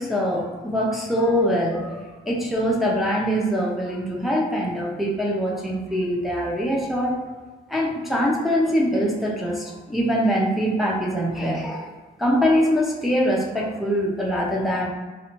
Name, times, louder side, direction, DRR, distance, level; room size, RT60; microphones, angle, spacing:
voice 1, 0.0-7.2 7.7-11.9 12.2-14.9, equal, ahead, -4 dB, 0.9 m, -23 dB
3.8 x 2.7 x 3.1 m, 1.3 s
cardioid pair, 90°, 20 cm